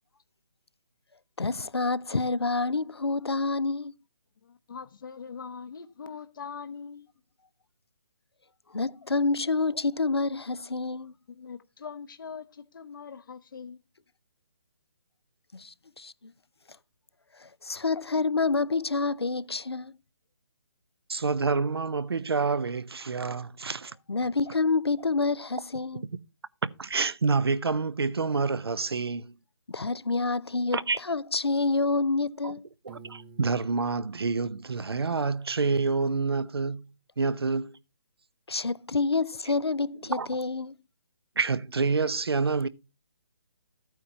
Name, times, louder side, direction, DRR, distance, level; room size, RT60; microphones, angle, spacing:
voice 1, 1.4-3.9 8.7-11.1 15.5-16.3 17.4-19.9 24.1-26.0 29.7-32.6 38.5-40.7, left 3 dB, 85° left, 0.6 m, -28 dB
voice 2, 4.4-7.1 11.3-13.8, left 6 dB, 55° left, 0.9 m, -42 dB
voice 3, 21.1-23.9 26.6-29.3 30.7-31.0 32.4-32.5 32.8-36.9 37.2-37.8 40.1-40.3 41.4-42.7, right 4 dB, 75° right, 0.8 m, -28 dB
Piano, 32.9-35.8, right 4 dB, 25° right, 0.6 m, -53 dB
14.0 x 9.1 x 2.8 m
figure-of-eight pair, 145°, 13 cm